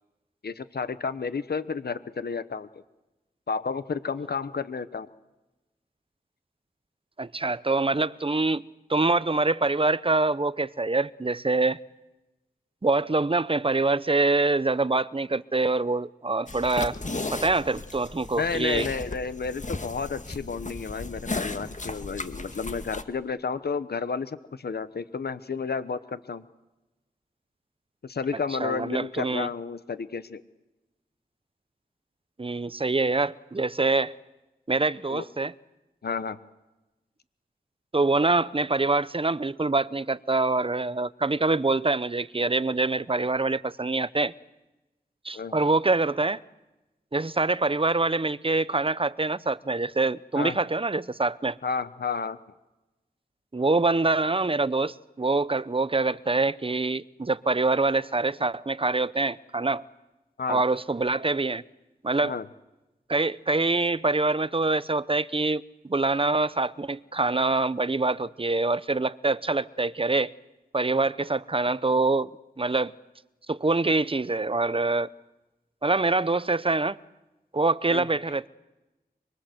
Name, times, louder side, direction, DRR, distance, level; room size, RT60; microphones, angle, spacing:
voice 1, 0.4-2.7 3.5-5.1 18.4-26.4 28.0-30.4 35.1-35.2 36.0-36.4 45.3-45.6 50.3-50.6 51.6-52.4 60.4-60.6 62.2-62.4 77.9-78.1, left 5 dB, 85° left, 0.9 m, -31 dB
voice 2, 7.2-8.6 8.9-11.8 12.8-16.9 17.3-18.9 28.6-29.5 32.4-34.1 34.7-35.5 37.9-44.3 45.2-46.4 47.1-51.6 53.5-59.8 60.5-61.6 62.0-62.3 63.1-70.3 70.7-72.3 72.6-72.9 73.5-75.1 75.8-77.0 77.5-78.5, right 3 dB, 35° right, 0.8 m, -25 dB
sound 1, 16.5-23.0, left 2 dB, 50° left, 1.9 m, -35 dB
25.0 x 23.5 x 7.9 m
wide cardioid pair, 55°, 16 cm